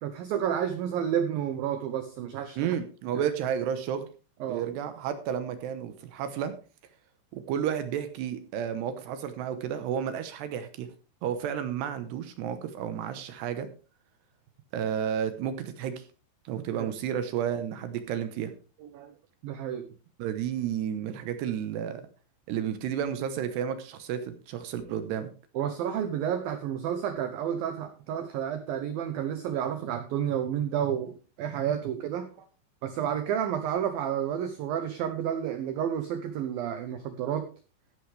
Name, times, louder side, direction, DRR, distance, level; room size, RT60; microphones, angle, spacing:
voice 1, 0.0-2.8 3.0-3.2 4.4-4.7 16.8-16.9 18.8-19.1 19.4-19.9 25.5-32.5 32.8-37.5, right 9 dB, 90° right, 9 dB, 2.0 m, -31 dB
voice 2, 2.6-4.1 4.5-6.5 7.3-10.9 11.2-13.7 14.7-16.0 16.5-18.5 20.2-22.0 22.5-25.3, right 9 dB, 75° right, 9 dB, 2.8 m, -31 dB
14.0 x 11.5 x 3.3 m, 0.34 s
omnidirectional pair, 5.5 m